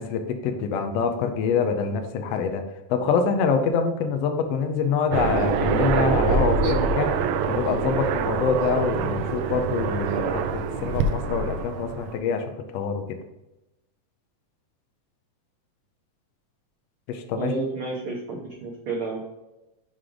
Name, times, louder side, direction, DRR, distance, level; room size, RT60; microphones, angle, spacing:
voice 1, 0.0-2.6 2.9-7.1 7.5-13.0 17.1-17.5, left 5 dB, 85° left, 5 dB, 1.4 m, -25 dB
Aircraft, 5.1-12.2, right 5 dB, 90° right, 1.6 m, -25 dB
voice 2, 17.4-19.2, right 3 dB, 70° right, -2 dB, 1.2 m, -30 dB
6.4 x 4.8 x 3.9 m, 0.96 s
omnidirectional pair, 3.7 m